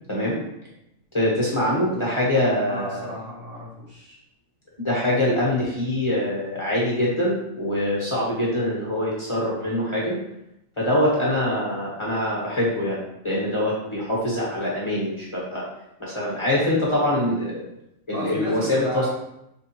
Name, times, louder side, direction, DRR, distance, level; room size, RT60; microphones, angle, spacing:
voice 1, 1.1-3.1 4.8-10.2 10.8-15.6 16.0-17.6 18.1-19.1, left 1 dB, 25° left, -6 dB, 1.2 m, -24 dB
voice 2, 2.7-4.2 18.1-19.1, right 1 dB, 60° right, -6 dB, 1.9 m, -34 dB
4.9 x 3.6 x 3.0 m, 0.82 s
omnidirectional pair, 1.4 m